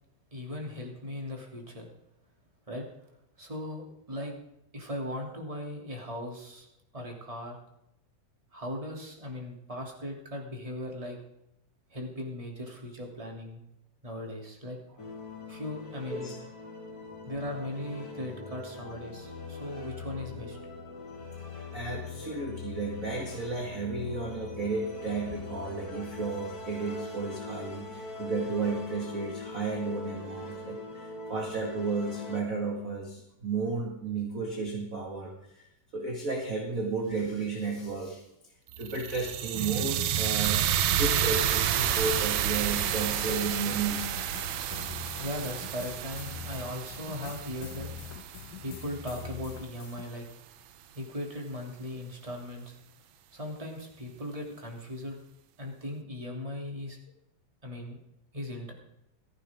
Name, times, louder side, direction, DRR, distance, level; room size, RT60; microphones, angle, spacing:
voice 1, 0.3-1.9 2.7-2.9 3.4-4.3 4.7-6.7 6.9-7.6 8.5-11.2 11.9-13.6 14.0-14.8 15.5-16.3 17.2-20.6 45.2-47.9 48.6-50.3 50.9-52.8 53.3-55.2 55.6-57.0 57.6-58.0 58.3-58.7, left 1 dB, 10° right, 0 dB, 2.3 m, -38 dB
sound 1, 15.0-32.4, left 3 dB, 30° left, 2.2 m, -42 dB
voice 2, 21.7-35.7 35.9-38.2 38.8-44.0, right 4 dB, 30° right, 0 dB, 1.6 m, -33 dB
sound 2, 38.7-48.9, right 10 dB, 80° right, 1.6 m, -30 dB
sound 3, 43.0-50.0, left 8 dB, 75° left, 1.9 m, -44 dB
16.5 x 14.5 x 3.7 m, 0.82 s
omnidirectional pair, 4.3 m